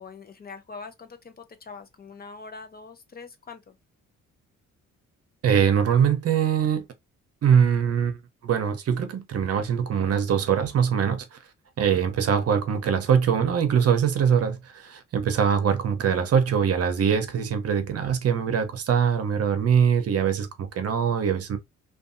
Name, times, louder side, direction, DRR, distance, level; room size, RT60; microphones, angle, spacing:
voice 1, 0.0-3.7, left 4 dB, 30° left, 0.5 m, -43 dB
voice 2, 5.4-6.9 7.4-11.4 11.8-21.6, right 7 dB, 55° right, 0.7 m, -23 dB
2.6 x 2.3 x 2.5 m
cardioid pair, 90°, 30 cm